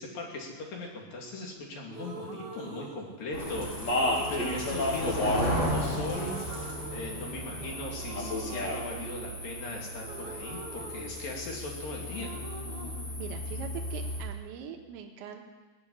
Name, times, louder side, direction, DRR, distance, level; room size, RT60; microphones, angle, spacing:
voice 1, 0.0-12.4, left 2 dB, 55° left, -1 dB, 3.8 m, -39 dB
sound 1, 1.9-3.6 4.0-5.8 6.0-7.6 8.0-11.7 12.0-14.0, right 3 dB, 60° right, 2.3 m, -44 dB
sound 2, 3.3-14.2, equal, 80° left, 8.9 m, -35 dB
Speech, 3.6-5.6 5.8-6.7 8.1-8.8, left 1 dB, 35° left, 1.9 m, -30 dB
voice 2, 13.2-15.4, right 8 dB, 80° right, 2 dB, 3.6 m, -42 dB
18.5 x 7.7 x 9.7 m, 1.4 s
omnidirectional pair, 5.1 m